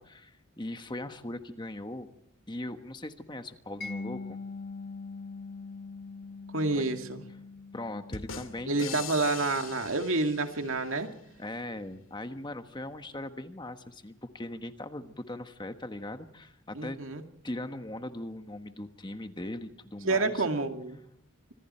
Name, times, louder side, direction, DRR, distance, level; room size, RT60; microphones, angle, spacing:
voice 1, 0.0-2.1 2.5-4.4 6.7-6.8 7.7-9.0 11.4-17.0 17.4-20.4, left 1 dB, 20° left, 8 dB, 1.3 m, -39 dB
Mallet percussion, 3.8-10.6, left 4 dB, 45° left, 1.4 m, -44 dB
voice 2, 6.5-7.2 8.7-11.1 16.7-17.2 20.0-21.0, right 3 dB, 70° right, 5 dB, 2.4 m, -28 dB
sound 1, 8.1-10.9, left 6 dB, 70° left, 2.3 m, -42 dB
26.5 x 25.5 x 4.4 m, 0.76 s
head